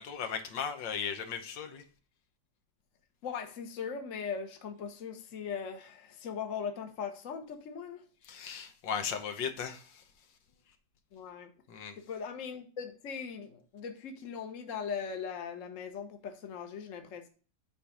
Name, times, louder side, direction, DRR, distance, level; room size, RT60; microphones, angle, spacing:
voice 1, 0.0-1.8 8.3-9.8 11.7-11.9, left 7 dB, 80° left, 1.7 m, -36 dB
voice 2, 3.2-8.0 11.1-11.5 12.0-17.3, left 6 dB, 50° left, 1.3 m, -39 dB
8.1 x 4.3 x 5.0 m
omnidirectional pair, 2.0 m